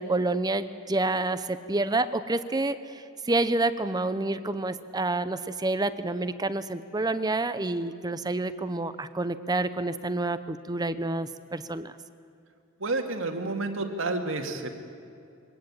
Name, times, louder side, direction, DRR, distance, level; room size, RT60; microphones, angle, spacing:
voice 1, 0.0-11.9, right 2 dB, 20° right, 12 dB, 0.7 m, -28 dB
voice 2, 12.8-14.8, right 2 dB, 70° right, 4 dB, 2.1 m, -30 dB
23.0 x 18.0 x 8.9 m, 2.5 s
head